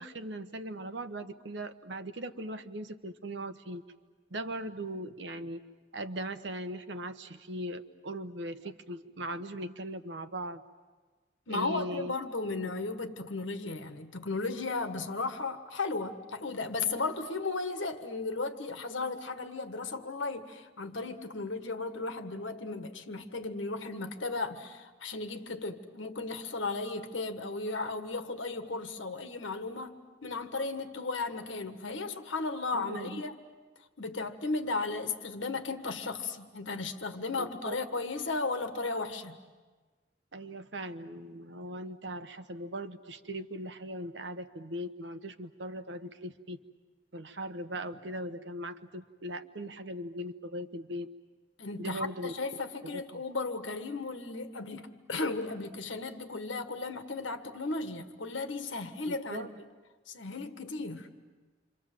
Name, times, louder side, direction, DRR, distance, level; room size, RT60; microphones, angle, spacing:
voice 1, 0.0-3.8 4.3-5.6 5.9-10.6 11.5-12.1 12.6-12.7 32.7-33.2 37.4-37.8 40.3-46.6 47.1-51.1 51.8-52.3 52.8-53.2 59.1-59.5, right 1 dB, 70° right, 10 dB, 1.1 m, -39 dB
voice 2, 11.5-30.0 30.2-33.4 34.0-39.4 51.6-59.5 60.1-61.1, left 3 dB, 90° left, 8 dB, 1.6 m, -35 dB
28.5 x 25.0 x 7.6 m, 1.3 s
head